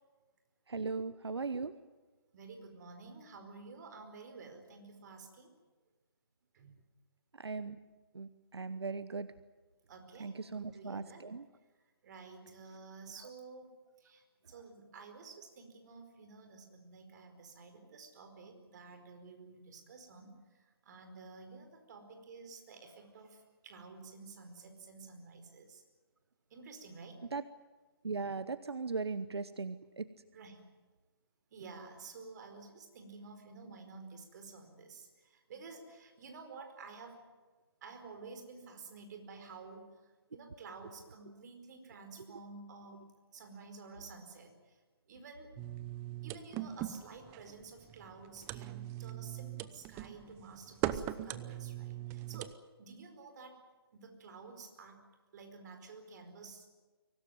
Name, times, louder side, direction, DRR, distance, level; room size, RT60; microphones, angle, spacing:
voice 1, 0.7-1.7 7.4-7.8 8.1-9.3 10.2-11.4 27.3-27.4 28.0-30.1, right 4 dB, 85° right, 14 dB, 0.9 m, -38 dB
voice 2, 2.3-5.5 6.5-6.7 9.9-11.2 11.7-13.7 14.0-25.8 26.5-27.2 30.3-30.7 31.5-37.2 37.8-40.0 40.3-44.8 45.1-45.5 46.2-53.6 53.9-55.0 55.3-56.7, right 4 dB, 45° right, 6 dB, 4.7 m, -51 dB
sound 1, 45.6-52.5, right 13 dB, 20° right, 0.7 m, -40 dB
23.5 x 18.0 x 9.4 m, 1.3 s
hypercardioid pair, 145°, 13 cm